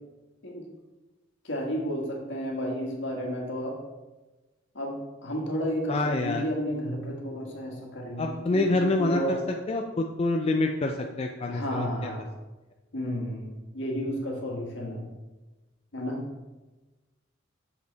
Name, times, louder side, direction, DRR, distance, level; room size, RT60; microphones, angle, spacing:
voice 1, 1.4-3.8 4.7-9.4 11.5-12.3 12.9-15.1 15.9-16.2, equal, 65° left, 0 dB, 1.6 m, -32 dB
voice 2, 5.9-6.4 8.2-9.4 9.7-12.1, left 2 dB, 30° left, 2 dB, 0.4 m, -27 dB
6.8 x 5.2 x 4.0 m, 1.1 s
head